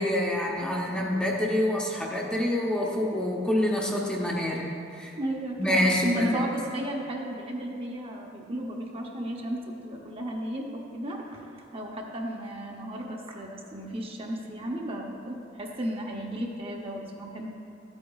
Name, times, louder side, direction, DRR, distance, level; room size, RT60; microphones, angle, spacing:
voice 1, 0.0-5.1 5.6-6.4, left 1 dB, 5° left, -3 dB, 0.7 m, -27 dB
voice 2, 5.2-11.5 11.7-17.5, right 1 dB, 30° right, 0 dB, 0.7 m, -34 dB
13.0 x 8.6 x 2.3 m, 2.6 s
head